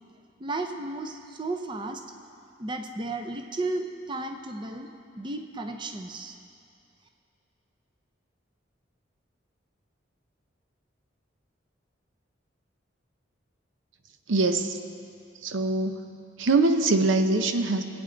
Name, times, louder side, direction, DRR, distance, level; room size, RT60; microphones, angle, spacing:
voice 1, 0.4-2.0 2.6-4.9 5.2-6.4, right 2 dB, 25° right, 5 dB, 0.6 m, -33 dB
voice 2, 14.3-14.8 15.4-16.0 16.4-17.8, right 3 dB, 90° right, 7 dB, 0.7 m, -23 dB
20.0 x 8.7 x 3.9 m, 2.5 s
head